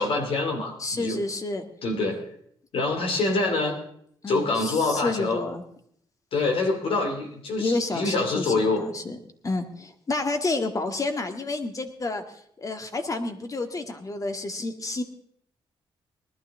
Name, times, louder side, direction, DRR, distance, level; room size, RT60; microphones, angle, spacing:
voice 1, 0.0-1.2 1.8-2.2 2.7-3.8 4.3-5.4 6.3-8.8, left 3 dB, 70° left, 3 dB, 2.9 m, -25 dB
voice 2, 0.8-1.7 4.2-5.6 7.6-9.2 9.4-12.2 12.6-15.0, left 3 dB, 35° left, 7 dB, 1.9 m, -29 dB
19.5 x 12.0 x 3.7 m, 0.66 s
cardioid pair, 80°, 10 cm